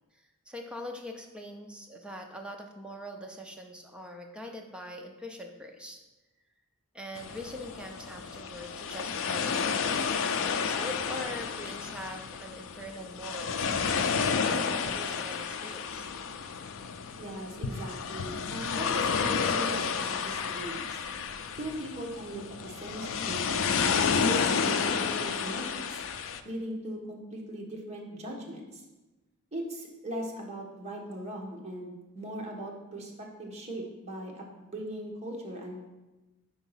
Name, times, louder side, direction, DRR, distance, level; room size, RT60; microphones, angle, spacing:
voice 1, 0.5-6.0 6.9-10.1 10.6-16.1, left 1 dB, 5° right, 2 dB, 0.5 m, -42 dB
sound 1, 7.2-26.4, left 6 dB, 60° left, 0.4 m, -31 dB
voice 2, 17.2-21.0 21.6-26.0 26.4-28.8 29.5-35.8, right 1 dB, 30° right, -1 dB, 1.1 m, -39 dB
4.9 x 4.6 x 5.5 m, 1.1 s
head